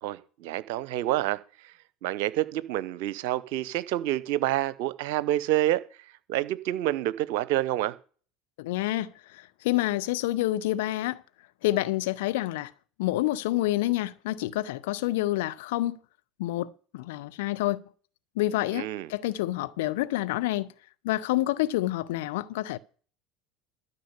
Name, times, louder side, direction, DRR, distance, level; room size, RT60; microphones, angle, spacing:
voice 1, 0.0-1.7 2.0-5.8 6.3-8.0 18.7-19.1, right 14 dB, 65° right, 0.9 m, -28 dB
voice 2, 8.6-11.2 11.6-12.7 13.0-16.0 16.4-17.8 18.4-20.7 21.0-22.8, left 16 dB, 70° left, 0.8 m, -28 dB
13.0 x 5.7 x 8.2 m
hypercardioid pair, 75°, 0 cm